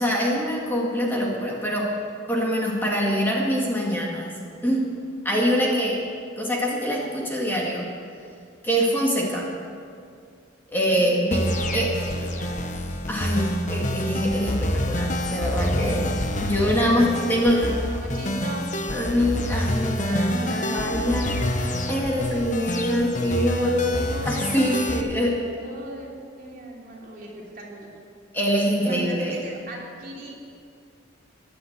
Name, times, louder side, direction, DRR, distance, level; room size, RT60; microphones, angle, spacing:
voice 1, 0.0-1.9 2.3-4.9 5.2-6.0 6.4-7.9 8.6-9.5 10.7-11.4 11.7-12.1 13.1-16.1 16.4-17.7 18.9-25.4 28.3-29.4, equal, 10° left, -3 dB, 2.0 m, -24 dB
voice 2, 10.9-12.6 16.8-18.8 19.1-21.3 22.7-26.1 26.4-27.9 28.8-30.4, right 1 dB, 45° right, -3 dB, 3.2 m, -39 dB
sound 1, 11.3-25.0, left 1 dB, 40° left, 1.1 m, -27 dB
16.0 x 10.5 x 8.1 m, 2.3 s
head